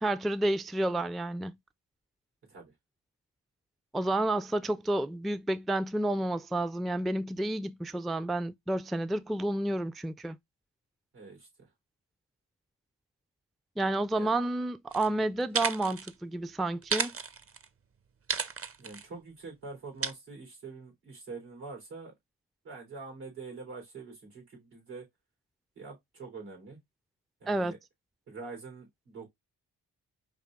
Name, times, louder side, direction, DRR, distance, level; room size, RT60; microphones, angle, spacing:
voice 1, 0.0-1.5 3.9-10.4 13.8-17.1 27.5-27.7, right 1 dB, ahead, 0.3 m, -30 dB
voice 2, 11.1-11.5 14.1-14.4 15.1-15.3 18.8-22.1 22.6-25.1 25.8-26.8 27.4-27.8 28.3-29.3, right 4 dB, 85° right, 3.5 m, -45 dB
sound 1, 14.9-15.1 15.4-16.1 16.8-17.7 18.3-19.1 20.0-20.1, right 5 dB, 35° right, 0.7 m, -33 dB
5.3 x 2.7 x 3.6 m
supercardioid pair, 45°, 38 cm